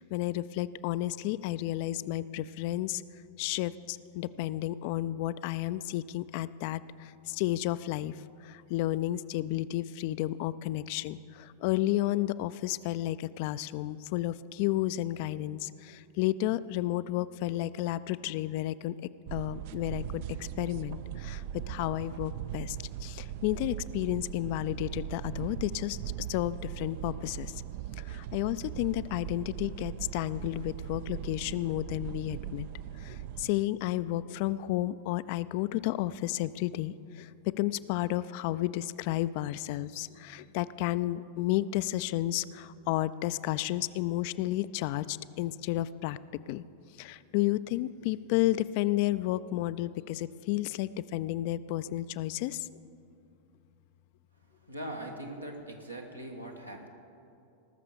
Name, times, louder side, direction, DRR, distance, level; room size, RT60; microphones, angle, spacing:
voice 1, 0.0-3.0 3.4-18.9 19.3-26.0 26.3-27.5 28.0-32.7 33.0-37.3 37.6-46.2 46.5-46.6 47.0-52.7, left 15 dB, 45° left, 16 dB, 0.3 m, -32 dB
sound 1, 19.3-33.5, right 11 dB, 50° right, 0.4 m, -40 dB
voice 2, 54.5-56.9, right 1 dB, 85° right, 1 dB, 1.6 m, -41 dB
18.5 x 6.7 x 6.9 m, 2.7 s
figure-of-eight pair, 90°, 0 cm